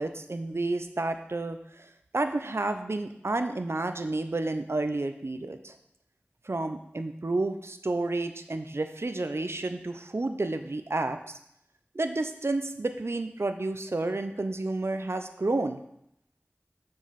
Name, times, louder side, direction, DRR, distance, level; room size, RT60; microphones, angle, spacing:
voice 1, 0.0-1.6 2.1-5.7 6.5-11.4 11.9-15.8, right 2 dB, 75° right, 8 dB, 0.7 m, -30 dB
6.9 x 5.3 x 5.9 m, 0.77 s
wide cardioid pair, 40°, 4 cm